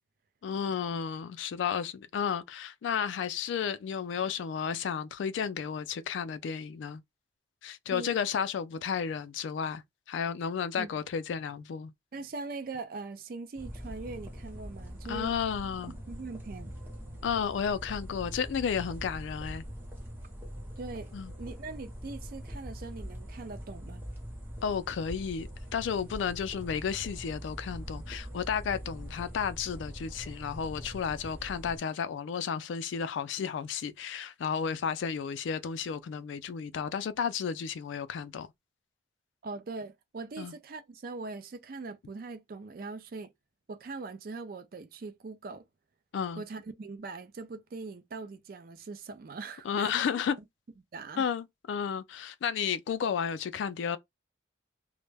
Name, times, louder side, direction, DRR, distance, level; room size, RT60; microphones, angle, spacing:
voice 1, 0.4-7.0 7.6-11.9 15.1-15.9 17.2-19.6 21.1-21.3 24.6-38.5 40.4-40.5 46.1-46.4 49.6-50.4 51.2-54.0, left 7 dB, 75° left, 0.3 m, -32 dB
voice 2, 12.1-15.3 15.9-16.7 20.8-21.1 21.4-24.0 39.4-43.3 43.7-45.7 46.4-49.9 50.9-51.3, right 3 dB, 50° right, 0.4 m, -41 dB
sound 1, 13.6-31.8, equal, 10° right, 0.7 m, -43 dB
2.1 x 2.0 x 3.2 m
head